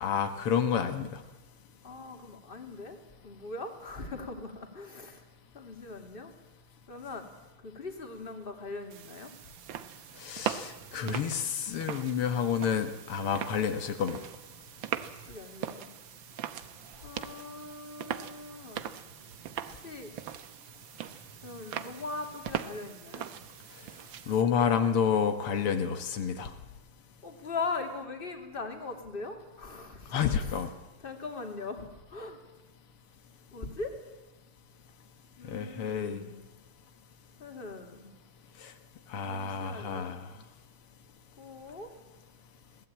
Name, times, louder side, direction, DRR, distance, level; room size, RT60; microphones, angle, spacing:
voice 1, 0.0-1.2 10.2-14.2 24.3-26.5 30.1-30.7 35.5-36.2 38.6-38.7 39.1-40.3, left 7 dB, 85° left, 7 dB, 2.3 m, -29 dB
voice 2, 1.8-3.0 3.2-5.2 5.5-6.3 6.9-7.3 7.6-9.3 15.2-16.0 17.0-18.9 19.6-20.1 21.4-23.3 27.2-30.6 31.0-32.4 33.5-34.0 35.4-36.4 37.4-38.1 39.2-40.2 41.4-41.9, left 3 dB, 25° left, 4 dB, 2.5 m, -40 dB
sound 1, 8.9-24.4, right 10 dB, 65° right, 1.6 m, -41 dB
21.5 x 17.5 x 8.8 m, 1.1 s
omnidirectional pair, 2.4 m